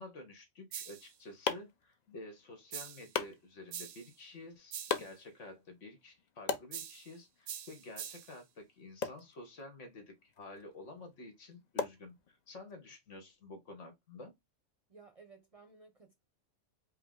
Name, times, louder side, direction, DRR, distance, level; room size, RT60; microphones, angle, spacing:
voice 1, 0.0-14.3, left 2 dB, 75° left, 1.6 m, -50 dB
sound 1, 0.7-1.1 2.7-3.1 3.7-4.1 4.7-5.1 6.7-7.1 7.5-8.4, right 10 dB, 90° right, 1.0 m, -44 dB
sound 2, 0.8-12.7, left 6 dB, 50° left, 0.5 m, -43 dB
voice 2, 14.9-16.1, right 4 dB, 40° right, 0.6 m, -57 dB
5.4 x 2.1 x 3.7 m
omnidirectional pair, 1.3 m